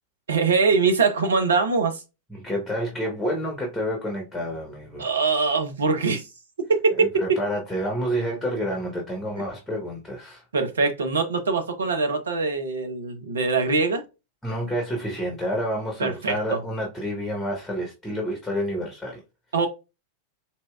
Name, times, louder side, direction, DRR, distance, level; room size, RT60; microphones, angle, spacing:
voice 1, 0.3-2.0 5.0-6.2 6.6-7.2 10.5-14.0 16.0-16.6 19.5-19.7, right 4 dB, 70° right, 0.7 m, -23 dB
voice 2, 2.3-5.1 7.0-10.4 14.4-19.2, equal, 5° left, 1.1 m, -29 dB
4.2 x 2.8 x 2.3 m
figure-of-eight pair, 90°, 0 cm